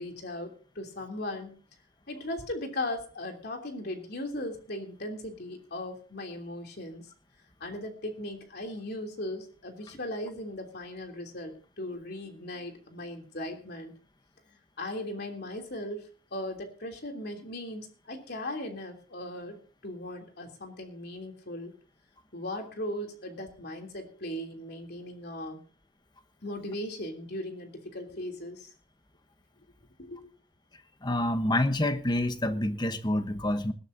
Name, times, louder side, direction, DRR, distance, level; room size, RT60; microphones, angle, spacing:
voice 1, 0.0-1.5 2.1-7.1 7.6-13.9 14.5-21.7 22.3-25.6 26.4-28.7 30.0-30.2, left 1 dB, 55° left, 3 dB, 3.2 m, -38 dB
voice 2, 31.0-33.7, left 1 dB, 25° left, 9 dB, 1.1 m, -27 dB
20.0 x 13.0 x 2.8 m, 0.39 s
head